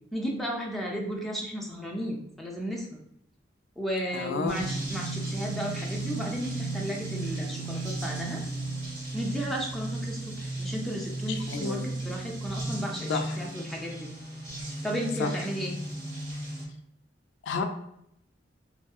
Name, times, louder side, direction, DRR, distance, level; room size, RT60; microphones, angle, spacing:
voice 1, 0.1-2.9 3.8-8.4 9.1-14.1 14.8-15.7, equal, ahead, -2 dB, 0.4 m, -34 dB
voice 2, 4.1-4.6 11.3-11.9 13.1-13.4 15.2-15.3 17.4-17.6, left 4 dB, 75° left, 5 dB, 0.3 m, -31 dB
sound 1, 4.5-16.7, right 2 dB, 90° right, 1.2 m, -35 dB
2.6 x 2.5 x 2.3 m, 0.74 s
head